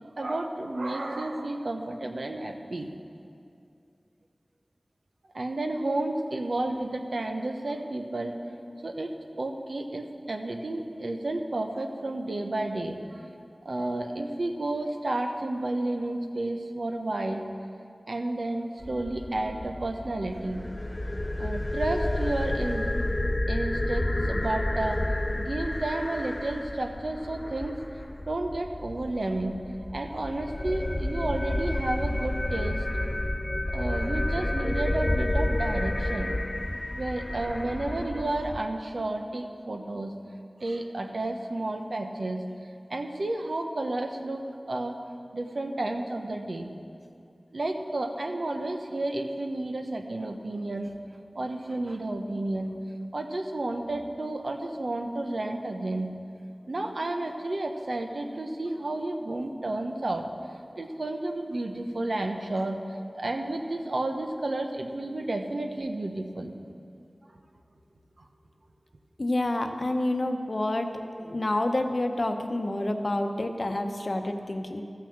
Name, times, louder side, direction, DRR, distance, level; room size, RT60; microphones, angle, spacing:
voice 1, 0.0-2.9 5.3-8.4 8.8-9.1 9.4-13.3 13.6-17.4 18.1-20.6 21.4-22.9 23.5-27.8 28.3-29.6 29.9-32.9 33.7-36.3 37.0-40.1 40.6-42.4 42.9-45.0 45.3-46.7 47.5-50.9 51.3-52.7 53.1-56.1 56.7-60.3 60.8-62.8 63.1-66.5, right 2 dB, 75° right, 4 dB, 0.9 m, -31 dB
sound 1, 18.8-38.6, left 1 dB, 35° left, 0.4 m, -30 dB
voice 2, 69.2-74.8, left 1 dB, 55° left, 5 dB, 0.8 m, -28 dB
14.0 x 6.0 x 7.4 m, 2.4 s
wide cardioid pair, 50°, 0 cm